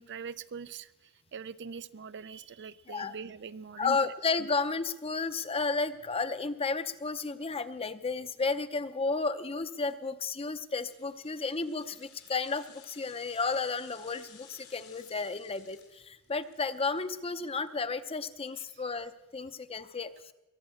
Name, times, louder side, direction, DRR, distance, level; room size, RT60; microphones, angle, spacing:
voice 1, 0.0-4.1 4.4-4.5 18.6-18.8, right 5 dB, 50° right, 15 dB, 0.5 m, -43 dB
voice 2, 3.8-20.3, left 4 dB, 25° left, 12 dB, 0.7 m, -33 dB
sound 1, 10.7-18.0 18.3-18.4, left 7 dB, 80° left, 5.1 m, -57 dB
22.0 x 7.3 x 8.6 m, 1.0 s
head